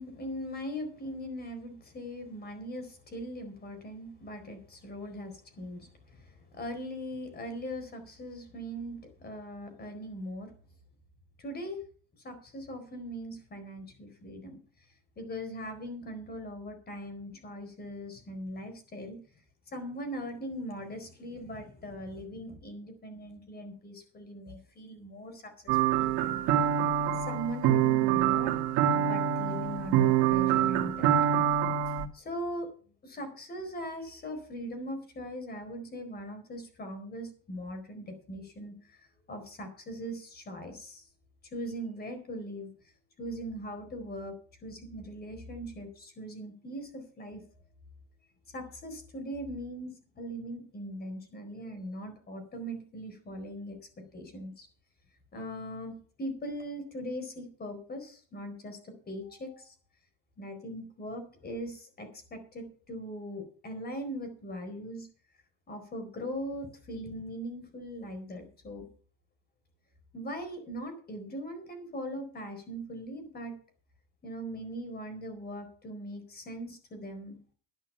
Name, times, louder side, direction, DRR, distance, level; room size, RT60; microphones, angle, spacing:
voice 1, 0.0-10.5 11.4-11.8 12.2-14.6 15.2-19.2 19.7-26.5 27.2-28.5 28.9-31.1 32.1-32.7 33.0-39.0 39.3-41.1 41.5-42.7 43.2-47.4 48.5-54.7 55.3-59.7 60.4-65.1 65.7-68.9 70.1-73.5 74.2-77.4, equal, 25° left, 7 dB, 4.4 m, -40 dB
sound 1, 25.7-32.0, right 10 dB, 65° right, 2.0 m, -26 dB
11.5 x 11.0 x 5.8 m, 0.42 s
cardioid pair, 145°, 40 cm